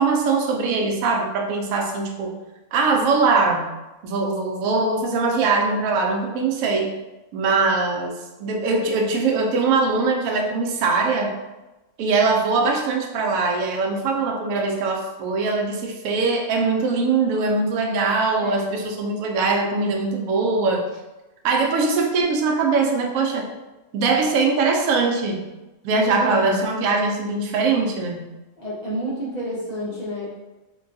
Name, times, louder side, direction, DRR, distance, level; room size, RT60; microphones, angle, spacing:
voice 1, 0.0-2.3 2.7-3.7 4.0-7.0 7.3-11.3 12.0-20.9 21.4-23.5 23.9-25.4 25.8-28.3, right 4 dB, 75° right, 1 dB, 1.0 m, -22 dB
voice 2, 18.4-18.7 25.9-26.6 28.6-30.3, equal, 60° left, -7 dB, 0.4 m, -29 dB
3.8 x 2.2 x 2.6 m, 1.1 s
omnidirectional pair, 1.5 m